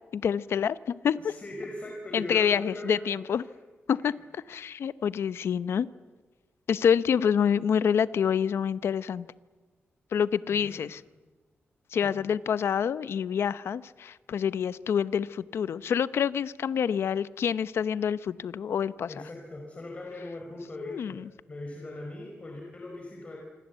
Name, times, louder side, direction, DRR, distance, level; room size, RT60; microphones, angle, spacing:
voice 1, 0.1-1.3 2.1-3.4 3.9-5.9 6.7-9.3 10.1-11.0 11.9-19.1 20.8-21.2, left 7 dB, 75° left, 15 dB, 0.8 m, -27 dB
voice 2, 1.2-3.4 4.0-4.1 10.5-10.8 12.0-12.1 19.1-21.2 21.5-23.4, left 1 dB, 30° left, 0 dB, 4.6 m, -40 dB
26.0 x 25.5 x 8.2 m, 1.3 s
wide cardioid pair, 130°, 4 cm